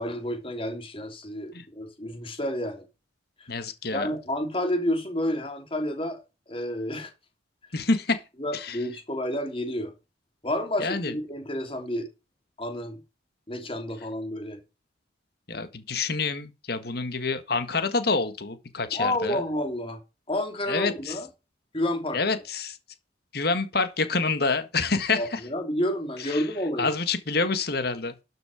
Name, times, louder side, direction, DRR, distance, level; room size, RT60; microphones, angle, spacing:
voice 1, 0.0-2.9 3.4-3.5 3.9-6.2 6.5-7.1 8.4-9.9 10.4-12.1 12.6-13.0 13.5-14.6 18.9-20.0 20.3-21.3 21.7-22.2 25.1-26.9, left 1 dB, 30° left, 2.9 m, -30 dB
voice 2, 3.5-4.1 7.7-8.2 8.5-8.8 10.8-11.1 15.5-19.4 20.7-21.2 22.1-22.8 23.3-25.4 26.2-26.4 26.8-28.1, left 4 dB, 55° left, 1.8 m, -27 dB
12.5 x 6.5 x 5.1 m
head